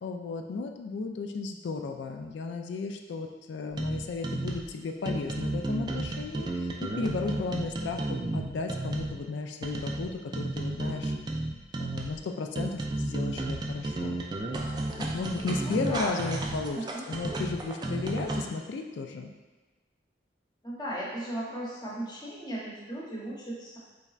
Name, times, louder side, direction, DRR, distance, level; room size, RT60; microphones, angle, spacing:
voice 1, 0.0-11.1 11.8-14.2 15.0-16.8 17.1-19.3, left 3 dB, 75° left, 4 dB, 0.3 m, -34 dB
sound 1, 3.8-4.7 5.1-9.2 9.6-12.2 12.6-18.4, right 2 dB, 25° right, 0.3 m, -33 dB
voice 2, 15.6-16.5 16.7-17.0 20.6-23.8, right 1 dB, 25° left, -6 dB, 0.9 m, -36 dB
4.0 x 3.3 x 2.4 m, 1.3 s
head